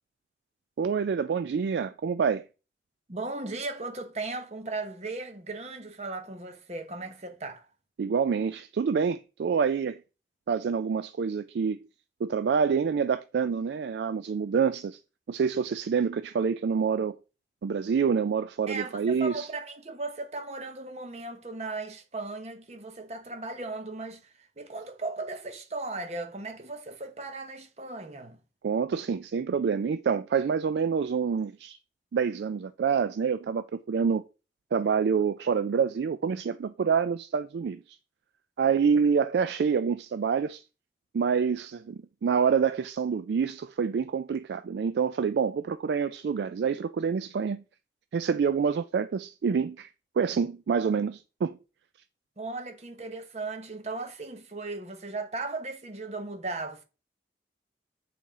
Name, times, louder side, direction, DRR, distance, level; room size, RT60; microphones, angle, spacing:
voice 1, 0.8-2.4 8.0-10.0 10.5-11.8 12.2-15.0 15.3-17.2 17.6-19.5 28.6-31.8 32.1-34.2 34.7-38.0 38.6-40.6 41.1-47.6 48.1-49.9 50.2-51.6, right 6 dB, 80° right, 0.3 m, -27 dB
voice 2, 3.1-7.7 18.7-28.4 52.4-56.8, right 3 dB, 40° right, 0.9 m, -37 dB
7.1 x 4.3 x 3.7 m
head